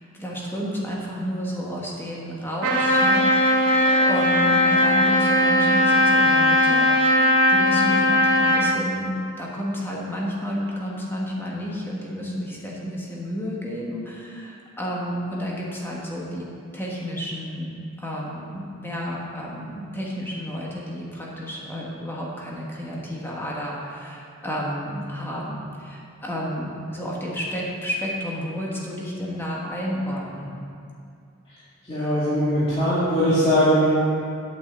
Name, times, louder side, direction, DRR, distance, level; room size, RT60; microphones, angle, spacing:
voice 1, 0.1-3.3 3.7-16.5 16.7-30.6, equal, 10° left, -4 dB, 1.5 m, -31 dB
Trumpet, 2.6-8.7, left 1 dB, 80° right, 1.9 m, -18 dB
voice 2, 31.9-33.9, equal, 25° left, -13 dB, 2.3 m, -20 dB
8.2 x 6.3 x 8.0 m, 2.4 s
head